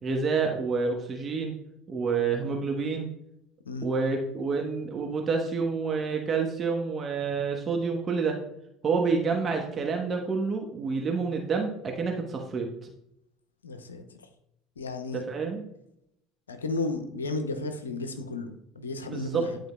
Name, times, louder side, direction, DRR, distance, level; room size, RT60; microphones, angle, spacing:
voice 1, 0.0-1.5 1.9-3.1 3.8-8.4 8.8-12.9 15.1-15.6 19.0-19.4, right 4 dB, 35° right, 2 dB, 1.0 m, -28 dB
voice 2, 13.6-14.2 14.8-15.3 16.5-19.6, left 3 dB, 90° left, 8 dB, 0.6 m, -33 dB
10.5 x 4.3 x 2.2 m, 0.79 s
hypercardioid pair, 65°, 0 cm